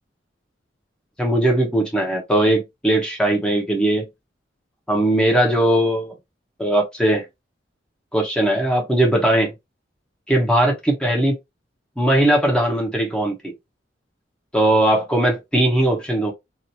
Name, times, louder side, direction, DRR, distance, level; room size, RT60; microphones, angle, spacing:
voice 1, 1.2-4.1 4.9-6.1 6.6-7.2 8.1-9.5 10.3-11.4 12.0-13.5 14.5-16.3, right 1 dB, 5° left, 0.7 m, -19 dB
2.9 x 2.4 x 2.7 m
head